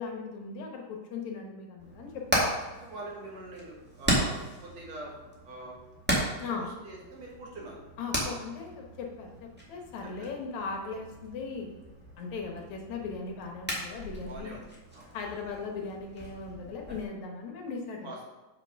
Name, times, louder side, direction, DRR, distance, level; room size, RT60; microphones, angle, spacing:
voice 1, 0.0-2.4 6.4-6.7 8.0-11.7 12.2-14.5 15.1-18.1, left 4 dB, 70° left, 1 dB, 2.4 m, -38 dB
Hammer, 1.8-17.0, equal, 5° right, 1.3 m, -36 dB
voice 2, 2.8-5.1 5.4-5.8 6.5-7.8 10.2-10.3 14.3-14.6 14.9-15.1 18.0-18.3, right 2 dB, 60° right, -2 dB, 2.6 m, -43 dB
7.4 x 5.9 x 5.5 m, 1.1 s
omnidirectional pair, 3.6 m